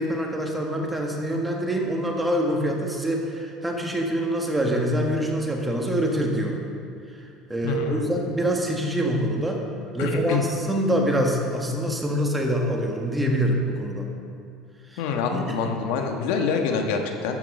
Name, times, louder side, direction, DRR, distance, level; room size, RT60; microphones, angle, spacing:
voice 1, 0.0-6.6 7.5-9.7 9.9-14.1 14.9-15.0 15.3-15.6, equal, 10° right, 0 dB, 1.6 m, -25 dB
voice 2, 7.6-8.1 10.0-10.4 15.0-17.4, left 5 dB, 80° left, 4 dB, 1.2 m, -26 dB
13.5 x 6.1 x 6.6 m, 2.4 s
cardioid pair, 125°, 0 cm